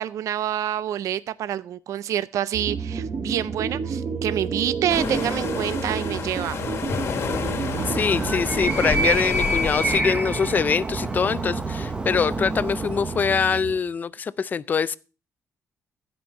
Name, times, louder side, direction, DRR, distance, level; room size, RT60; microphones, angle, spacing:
voice 1, 0.0-6.6, right 11 dB, 70° right, 0.4 m, -27 dB
sound 1, 2.5-13.8, right 5 dB, 40° right, 1.1 m, -32 dB
sound 2, 4.9-10.0, left 5 dB, 50° left, 1.5 m, -30 dB
Animal, 7.6-13.5, right 2 dB, 15° right, 0.7 m, -28 dB
voice 2, 7.9-15.0, left 6 dB, 30° left, 0.4 m, -24 dB
15.5 x 5.2 x 4.4 m
cardioid pair, 160°, 6 cm